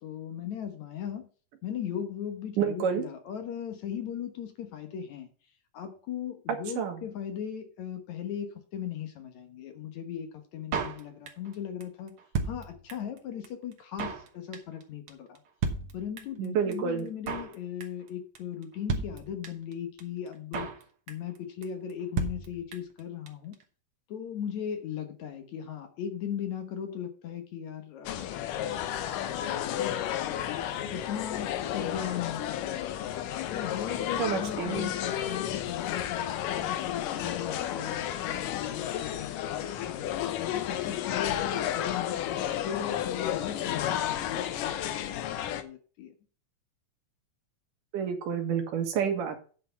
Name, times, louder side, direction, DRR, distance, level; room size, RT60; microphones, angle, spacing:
voice 1, 0.0-1.3 1.6-5.3 5.7-15.4 15.9-20.7 21.1-23.6 24.1-30.6 30.9-33.1 33.5-42.2 42.6-46.1, left 9 dB, 65° left, 7 dB, 2.4 m, -38 dB
voice 2, 2.6-3.0 6.8-7.0 16.4-17.1 34.2-34.9 47.9-49.4, right 7 dB, 80° right, 5 dB, 3.0 m, -29 dB
Drum kit, 10.7-11.5 11.8-11.9 12.1-13.2 13.4-13.5 13.7-14.3 14.5-14.8 15.1-15.2 15.3-15.4 15.6-16.4 16.7-16.8 17.0-17.5 17.8-18.1 18.3-18.4 18.6-18.7 18.9-19.7 20.0-20.1 20.3-20.8 21.1-21.4 21.6-21.7 21.9-22.0 22.2-23.0 23.3-23.4 23.5-23.6, right 5 dB, 55° right, 1.8 m, -33 dB
sound 1, 28.1-45.6, left 11 dB, 90° left, 2.5 m, -32 dB
9.5 x 4.8 x 7.0 m, 0.40 s
omnidirectional pair, 3.7 m